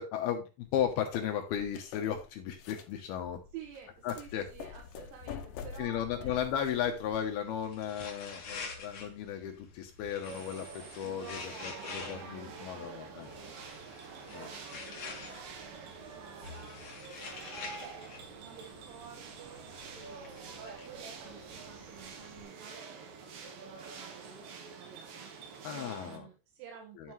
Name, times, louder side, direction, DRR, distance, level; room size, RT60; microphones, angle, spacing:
voice 1, 0.0-3.4 4.0-4.5 5.8-13.3 14.3-14.5 25.6-26.3 27.0-27.1, left 9 dB, 75° left, 4 dB, 2.5 m, -35 dB
sound 1, 0.6-7.2, left 7 dB, 90° left, 1.8 m, -47 dB
voice 2, 3.5-6.4 11.0-13.6 14.3-27.1, right 7 dB, 85° right, 1 dB, 3.7 m, -52 dB
sound 2, 6.6-22.4, left 4 dB, 55° left, 1.4 m, -48 dB
sound 3, 10.2-26.2, right 5 dB, 65° right, 2.7 m, -47 dB
10.5 x 7.4 x 3.1 m, 0.29 s
omnidirectional pair, 5.2 m